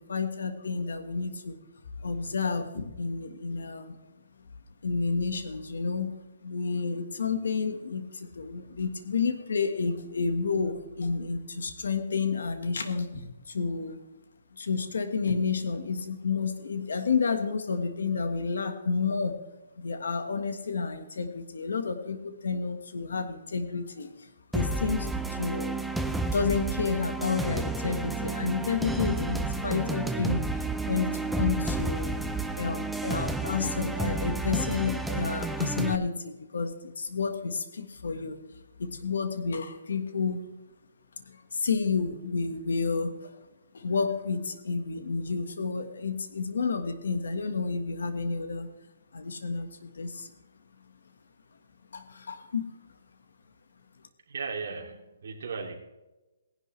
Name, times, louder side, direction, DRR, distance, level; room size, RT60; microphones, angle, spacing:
voice 1, 0.0-1.6 2.0-4.0 4.8-6.1 6.4-14.0 14.5-19.4 19.8-25.8 26.3-32.1 32.5-40.5 41.2-43.4 43.7-48.7 49.1-50.3 51.9-52.8, left 5 dB, 80° left, 7 dB, 1.5 m, -30 dB
sound 1, 24.5-36.0, right 2 dB, ahead, 0.5 m, -31 dB
voice 2, 54.3-55.7, right 5 dB, 60° right, 0 dB, 2.9 m, -36 dB
18.0 x 11.0 x 3.3 m, 1.0 s
hypercardioid pair, 170°, 0 cm